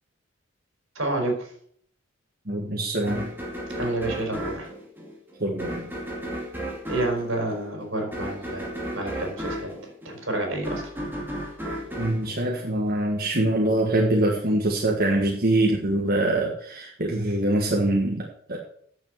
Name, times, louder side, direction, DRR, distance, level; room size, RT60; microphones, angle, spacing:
voice 1, 0.9-1.5 3.8-4.7 6.9-8.7 8.9-9.7 10.0-10.8, right 2 dB, 80° right, 2 dB, 4.2 m, -29 dB
voice 2, 2.5-3.3 5.4-5.8 12.0-18.6, right 1 dB, 50° right, -1 dB, 1.7 m, -24 dB
sound 1, 3.1-13.3, equal, 10° right, 2.5 m, -34 dB
9.5 x 7.2 x 7.6 m, 0.64 s
head